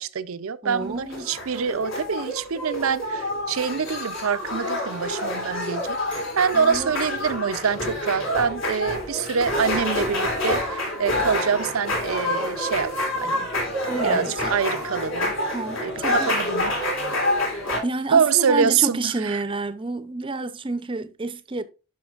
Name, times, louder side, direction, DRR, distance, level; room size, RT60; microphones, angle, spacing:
voice 1, 0.0-13.5 14.0-15.3 15.8-16.7 18.1-19.4, right 6 dB, 80° right, 0.5 m, -25 dB
voice 2, 0.6-1.3 6.5-6.9 13.9-14.5 15.5-16.3 17.8-21.6, right 3 dB, 25° right, 0.6 m, -29 dB
sound 1, 0.8-17.8, left 1 dB, 65° left, 3.3 m, -27 dB
10.5 x 5.9 x 2.4 m
head